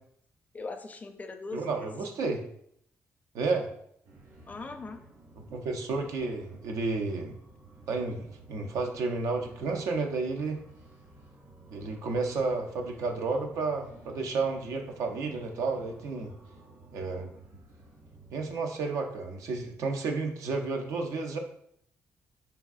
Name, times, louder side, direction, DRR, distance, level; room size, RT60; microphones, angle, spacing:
voice 1, 0.5-1.9 4.5-5.0, left 3 dB, 30° left, 6 dB, 0.4 m, -40 dB
voice 2, 1.5-2.4 3.3-3.7 5.4-7.4 7.9-10.6 11.7-16.3 16.9-17.3 18.3-21.4, right 3 dB, 80° right, 3 dB, 0.4 m, -31 dB
sound 1, 4.0-18.6, right 3 dB, 60° right, 0.9 m, -54 dB
3.3 x 2.5 x 2.3 m, 0.70 s
cardioid pair, 80°, 5 cm